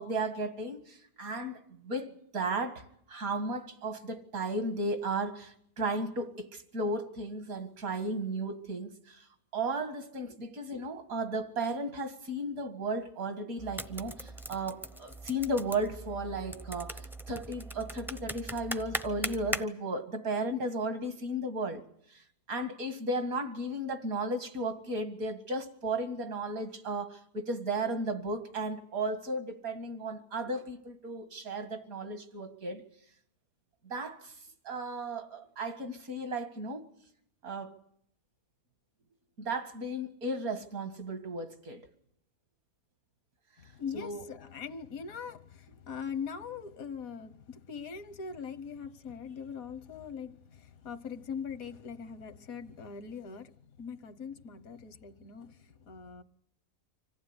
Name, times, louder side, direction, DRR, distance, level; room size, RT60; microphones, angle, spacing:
voice 1, 0.0-9.2 9.5-21.8 22.1-32.8 33.8-34.3 34.6-36.8 37.4-37.7 39.4-41.9 43.9-44.2, right 2 dB, 75° right, 2.4 m, -35 dB
sound 1, 13.6-19.6, right 1 dB, ahead, 0.5 m, -40 dB
voice 2, 43.6-56.2, left 6 dB, 70° left, 1.6 m, -41 dB
25.5 x 15.5 x 9.7 m
omnidirectional pair, 1.5 m